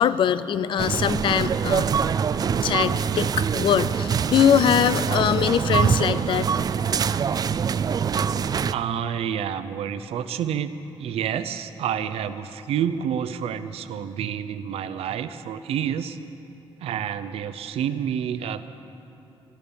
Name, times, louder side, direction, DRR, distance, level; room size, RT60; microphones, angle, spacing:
voice 1, 0.0-1.9 2.6-6.5, left 9 dB, 60° left, 15 dB, 0.4 m, -22 dB
sound 1, 0.8-8.7, right 7 dB, 40° right, 0.3 m, -24 dB
voice 2, 8.7-10.7 11.0-16.2 16.8-18.7, right 9 dB, 90° right, 10 dB, 0.6 m, -29 dB
13.0 x 13.0 x 6.9 m, 2.9 s
cardioid pair, 115°, 10 cm